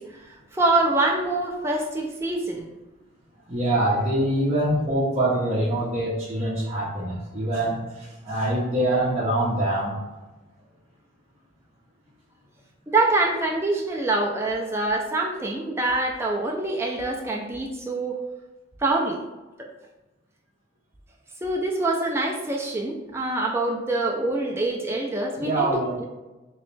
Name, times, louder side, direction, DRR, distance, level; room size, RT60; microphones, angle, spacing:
voice 1, 0.0-2.7 12.9-18.2 18.8-19.2 19.6-19.7 21.4-26.1, right 2 dB, 10° right, -1 dB, 0.4 m, -25 dB
voice 2, 3.5-10.0 25.4-25.9, right 1 dB, 30° right, -8 dB, 0.8 m, -24 dB
3.1 x 3.0 x 3.2 m, 1.1 s
head